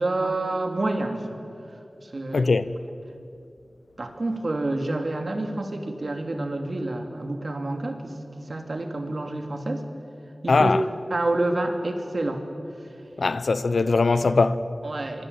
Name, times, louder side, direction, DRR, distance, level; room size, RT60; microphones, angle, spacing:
voice 1, 0.0-1.3 2.0-2.6 4.0-9.8 10.4-10.7 11.1-12.4 14.8-15.3, right 2 dB, 60° right, 3.1 m, -28 dB
voice 2, 2.3-2.7 10.5-10.8 13.2-14.6, left 3 dB, 85° left, 0.9 m, -20 dB
26.5 x 23.5 x 8.7 m
wide cardioid pair, 55°, 0 cm